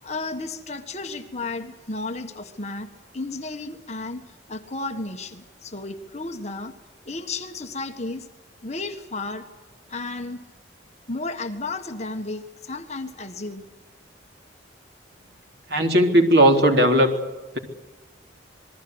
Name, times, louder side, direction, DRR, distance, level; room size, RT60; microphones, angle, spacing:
voice 1, 0.0-2.9 3.1-4.2 4.5-6.7 7.0-8.3 8.6-9.4 9.9-10.4 11.1-13.6, left 3 dB, 35° left, 6 dB, 1.5 m, -33 dB
voice 2, 15.7-17.1, equal, 60° right, 3 dB, 3.7 m, -17 dB
27.5 x 21.0 x 8.0 m, 1.2 s
head